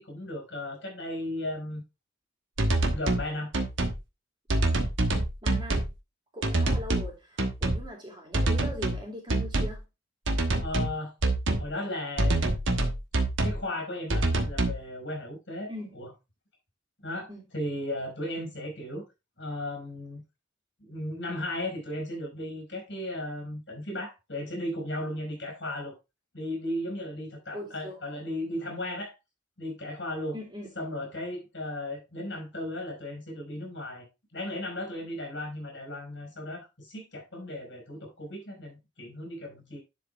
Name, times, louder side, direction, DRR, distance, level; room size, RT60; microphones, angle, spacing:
voice 1, 0.0-1.8 2.9-3.5 10.6-11.1 11.6-12.4 13.4-15.7 15.9-16.1 17.0-19.0 19.4-20.2 20.8-26.0 26.3-29.1 29.6-30.4 30.7-34.1 34.3-39.8, left 1 dB, 65° left, 4.7 m, -35 dB
sound 1, 2.6-3.3 3.5-4.0 4.5-5.9 6.4-7.1 7.4-7.8 8.3-9.0 9.3-9.8 10.3-10.9 11.2-11.7 12.2-13.6 14.1-14.8, right 2 dB, 75° right, 1.2 m, -26 dB
voice 2, 5.4-5.8 6.3-9.9 15.7-16.0 17.3-17.4 27.5-28.2 30.3-30.7, left 1 dB, 25° right, 2.5 m, -41 dB
10.5 x 4.7 x 3.4 m
head